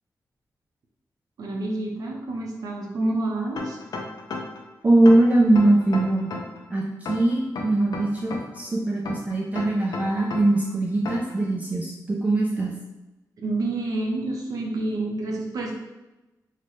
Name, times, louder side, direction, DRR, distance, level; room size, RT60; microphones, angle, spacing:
voice 1, 1.4-3.8 13.4-15.7, right 2 dB, 65° right, 0 dB, 0.7 m, -28 dB
sound 1, 3.6-4.6 5.1-6.6 7.1-8.6 9.1-10.6 11.1-11.4, left 4 dB, 70° left, 0.5 m, -33 dB
voice 2, 4.8-6.3 6.7-12.7, right 2 dB, 20° right, -3 dB, 0.3 m, -21 dB
3.9 x 2.2 x 3.1 m, 1.0 s
wide cardioid pair, 180°, 7 cm